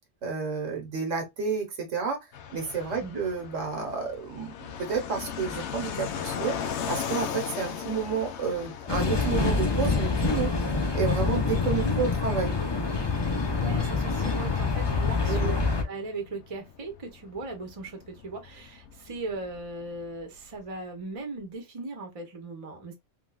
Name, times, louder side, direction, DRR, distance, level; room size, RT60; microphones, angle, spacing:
voice 1, 0.2-2.2 2.5-10.5 10.9-12.6 15.2-15.6, right 5 dB, 75° right, 1.4 m, -30 dB
Fixed-wing aircraft airplane, 2.3-20.7, left 7 dB, 70° left, 0.9 m, -39 dB
sound 1, 8.9-15.8, left 4 dB, 30° left, 0.5 m, -26 dB
voice 2, 11.7-12.1 13.6-15.6 15.8-22.9, right 2 dB, 30° right, 0.8 m, -38 dB
3.7 x 2.3 x 2.3 m
omnidirectional pair, 1.3 m